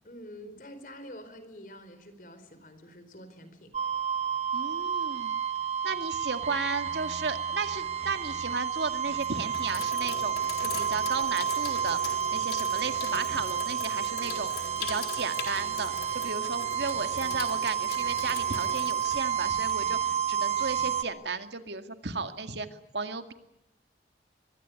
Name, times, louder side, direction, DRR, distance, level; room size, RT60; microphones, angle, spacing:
voice 1, 0.0-3.7, equal, 50° left, 11 dB, 4.4 m, -47 dB
sound 1, 3.7-21.0, right 8 dB, 35° right, 1.4 m, -30 dB
voice 2, 4.5-5.4 5.8-22.7 22.9-23.3, right 4 dB, 80° right, 8 dB, 2.1 m, -34 dB
Sink (filling or washing), 8.2-8.5 9.1-20.0, left 5 dB, 65° left, 4.2 m, -42 dB
24.5 x 22.5 x 9.6 m, 0.84 s
head